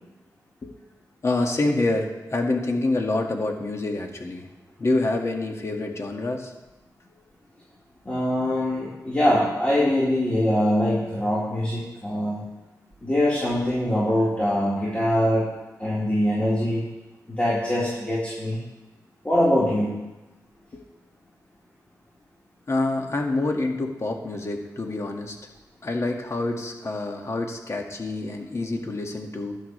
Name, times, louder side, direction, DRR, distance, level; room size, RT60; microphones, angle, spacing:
voice 1, 1.2-4.5 4.8-6.5 20.7-20.8 22.7-25.4 25.8-29.6, left 2 dB, 45° left, 2 dB, 1.9 m, -27 dB
voice 2, 8.0-12.4 13.0-15.5 15.8-16.8 17.3-18.6 19.2-20.0, left 1 dB, 20° left, -8 dB, 4.2 m, -23 dB
16.5 x 11.5 x 3.3 m, 1.0 s
cardioid pair, 75°, 7 cm